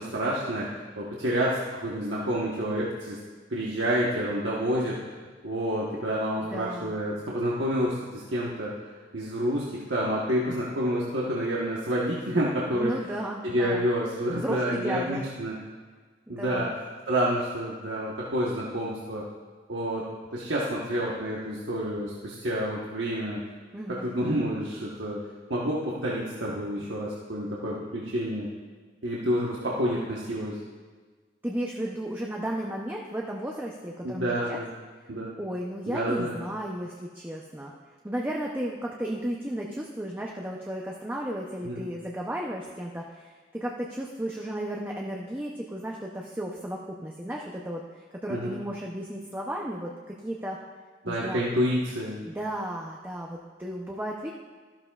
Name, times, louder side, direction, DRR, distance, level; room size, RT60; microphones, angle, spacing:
voice 1, 0.0-3.2 3.5-5.0 5.4-8.7 9.1-12.9 13.4-15.5 16.3-16.7 17.1-19.2 19.7-23.4 23.9-25.2 25.5-28.5 29.0-30.6 34.0-34.7 35.1-35.3 35.9-36.4 41.6-41.8 48.3-48.6 51.0-52.2, equal, 85° right, -5 dB, 1.2 m, -28 dB
voice 2, 6.5-6.9 12.7-13.9 14.3-15.3 16.3-16.7 23.7-24.2 31.4-34.6 35.4-37.7 38.0-50.6 51.1-51.4 52.2-54.3, right 1 dB, 10° right, -2 dB, 0.6 m, -34 dB
13.5 x 12.0 x 2.4 m, 1.5 s
head